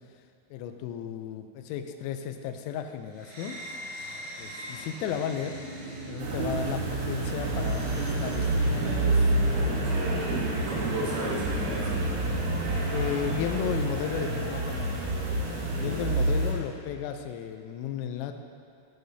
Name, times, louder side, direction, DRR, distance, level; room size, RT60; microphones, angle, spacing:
voice 1, 0.5-3.6 4.4-5.6 6.1-9.9 10.9-11.1 12.9-15.0 15.7-18.3, left 8 dB, 85° left, 7 dB, 3.2 m, -34 dB
sound 1, 3.1-9.8, right 3 dB, 50° right, 1.8 m, -39 dB
sound 2, 6.2-16.5, right 2 dB, 70° right, 2.7 m, -28 dB
voice 2, 9.5-12.2 15.8-16.0, right 1 dB, 85° right, -5 dB, 4.3 m, -35 dB
14.5 x 6.7 x 2.7 m, 2.4 s
omnidirectional pair, 5.9 m